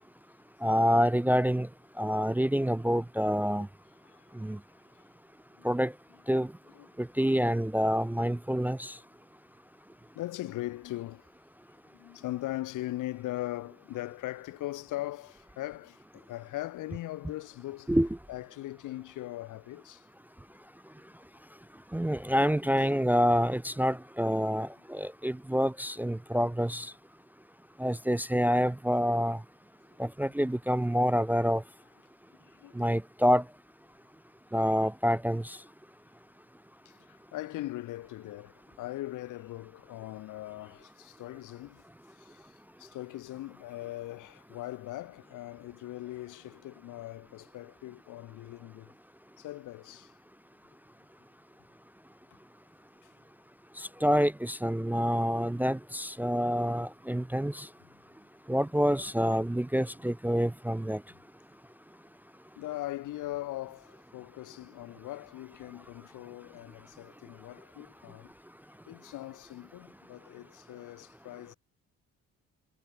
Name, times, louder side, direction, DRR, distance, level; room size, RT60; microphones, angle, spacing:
voice 1, 0.6-1.7 2.0-3.7 4.4-4.6 5.6-5.9 6.3-6.5 7.0-8.9 17.9-18.1 21.9-26.9 27.8-29.4 30.0-31.6 32.8-33.4 34.5-35.4 54.0-57.6 58.5-61.0, equal, 5° right, 0.5 m, -27 dB
voice 2, 4.0-4.5 5.6-5.7 6.7-6.9 10.1-11.3 11.9-18.0 18.3-20.1 22.8-22.9 26.8-26.9 32.4-32.9 36.8-41.8 42.2-48.9 49.4-50.1 53.0-53.1 57.8-57.9 62.6-68.3 68.9-71.6, left 16 dB, 85° left, 1.6 m, -40 dB
cardioid pair, 90°, 30 cm